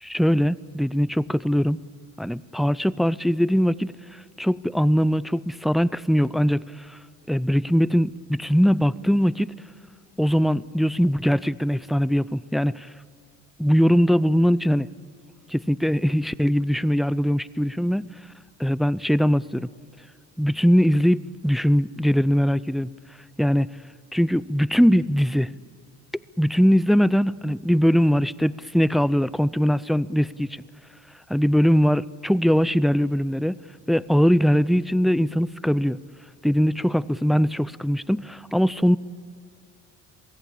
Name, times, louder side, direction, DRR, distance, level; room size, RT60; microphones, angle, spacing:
voice 1, 0.0-1.8 2.2-7.0 7.3-9.5 10.2-12.9 13.6-14.9 15.5-18.1 18.6-19.7 20.4-22.9 23.4-23.7 24.1-25.5 26.4-30.6 31.3-33.6 33.9-36.0 36.4-39.0, equal, ahead, 17 dB, 0.5 m, -21 dB
27.0 x 17.5 x 8.6 m, 2.4 s
cardioid pair, 90°, 30 cm